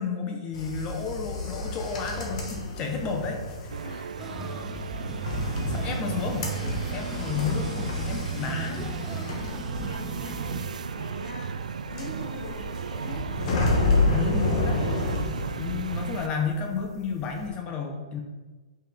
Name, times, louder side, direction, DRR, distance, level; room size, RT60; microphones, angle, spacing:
voice 1, 0.0-3.7 5.7-6.5 6.9-9.0 14.1-14.8 15.6-18.2, left 5 dB, 30° left, 3 dB, 1.2 m, -31 dB
sound 1, 0.5-16.5 16.7-17.5, left 2 dB, 65° left, 1.6 m, -30 dB
sound 2, 3.7-16.3, right 6 dB, 90° right, 0.3 m, -35 dB
voice 2, 3.8-4.5 9.3-13.3, left 2 dB, 80° left, -6 dB, 2.1 m, -43 dB
sound 3, 4.2-10.6, right 1 dB, 10° right, 0.8 m, -37 dB
7.2 x 5.9 x 3.7 m, 1.3 s
hypercardioid pair, 135°, 4 cm